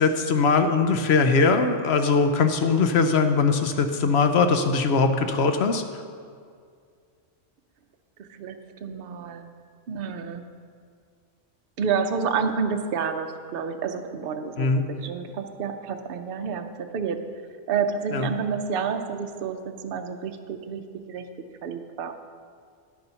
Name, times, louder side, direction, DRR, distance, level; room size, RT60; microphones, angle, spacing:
voice 1, 0.0-5.8 14.6-14.8 18.1-18.3, left 4 dB, 65° left, 7 dB, 0.9 m, -21 dB
voice 2, 8.2-9.5 9.9-10.5 11.8-17.2 17.7-20.8 21.1-21.2 21.6-22.1, right 6 dB, 55° right, 6 dB, 0.8 m, -29 dB
10.5 x 6.8 x 5.7 m, 2.2 s
omnidirectional pair, 1.2 m